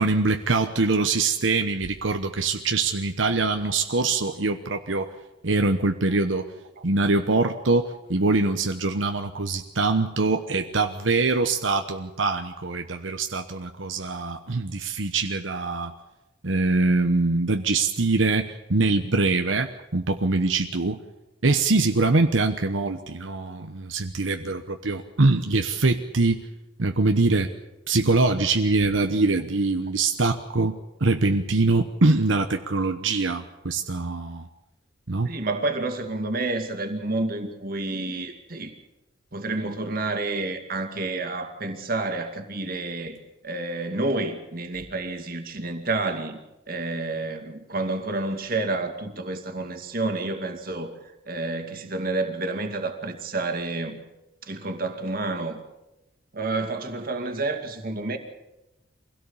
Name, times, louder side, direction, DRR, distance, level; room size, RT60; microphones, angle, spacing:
voice 1, 0.0-5.1 5.4-6.5 6.8-15.9 16.4-21.0 21.4-26.4 26.8-27.5 27.9-34.5 35.1-35.3, right 3 dB, 85° right, 6 dB, 1.1 m, -23 dB
voice 2, 35.2-38.7 39.3-43.2 43.4-46.4 46.7-51.0 51.3-54.0 54.4-55.6 56.3-58.2, right 2 dB, 50° right, 5 dB, 2.3 m, -29 dB
24.5 x 17.0 x 7.2 m, 0.97 s
head